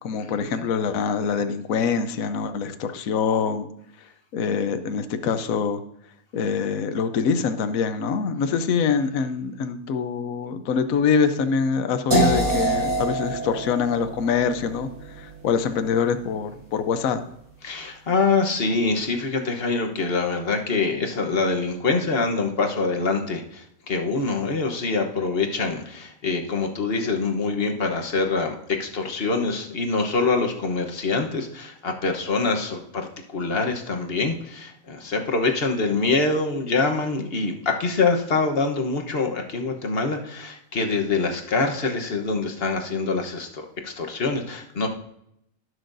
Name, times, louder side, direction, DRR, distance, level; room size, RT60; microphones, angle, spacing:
voice 1, 0.0-3.7 4.3-5.8 6.3-17.2, left 6 dB, 70° left, 9 dB, 1.2 m, -24 dB
sound 1, 12.1-18.0, right 1 dB, 70° right, 4.0 m, -28 dB
voice 2, 17.6-44.9, left 3 dB, 45° left, 4 dB, 1.2 m, -25 dB
19.0 x 6.3 x 2.6 m, 0.77 s
omnidirectional pair, 1.5 m